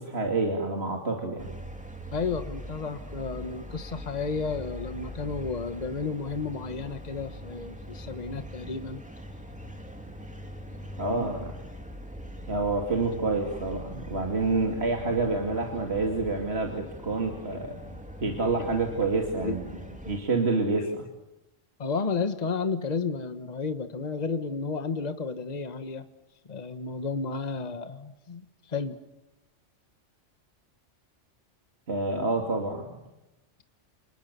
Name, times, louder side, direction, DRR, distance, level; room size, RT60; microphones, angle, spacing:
voice 1, 0.0-1.5 11.0-11.5 12.5-17.8 18.2-19.7 20.1-21.0 31.9-32.9, right 3 dB, 55° right, 2 dB, 2.8 m, -28 dB
sound 1, 1.4-20.2, equal, 5° right, 2.9 m, -42 dB
voice 2, 2.1-9.0 11.1-11.3 13.7-13.8 18.6-18.7 19.4-20.0 20.8-21.0 21.8-26.0 26.4-29.0, left 4 dB, 35° left, 10 dB, 1.4 m, -32 dB
29.0 x 28.0 x 6.9 m, 0.95 s
omnidirectional pair, 1.3 m